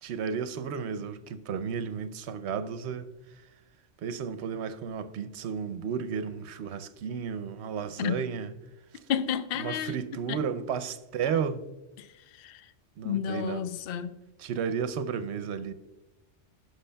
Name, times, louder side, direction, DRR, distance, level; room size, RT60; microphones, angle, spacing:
voice 1, 0.0-3.1 4.0-8.5 9.6-11.6 13.0-13.6 14.4-15.7, right 6 dB, 70° right, 0.8 m, -33 dB
voice 2, 9.1-10.0 10.3-10.4 12.0-12.1 12.4-12.6 13.0-14.2, left 9 dB, 60° left, 0.7 m, -31 dB
15.0 x 6.1 x 2.2 m
omnidirectional pair, 1.3 m